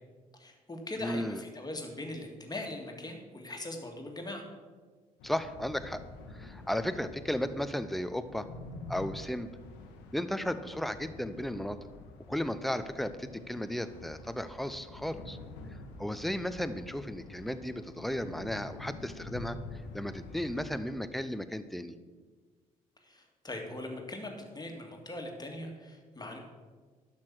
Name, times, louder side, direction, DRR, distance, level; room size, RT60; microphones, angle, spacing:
voice 1, 0.3-4.4 23.0-26.5, left 1 dB, 20° left, 2 dB, 2.1 m, -41 dB
voice 2, 1.0-1.4 5.2-6.0 6.3-8.5 8.9-9.5 10.1-11.8 12.3-15.4 16.0-22.0, equal, ahead, 11 dB, 0.7 m, -35 dB
sound 1, 5.2-20.8, left 3 dB, 70° left, 1.1 m, -47 dB
12.0 x 6.1 x 6.1 m, 1.5 s
figure-of-eight pair, 45°, 19 cm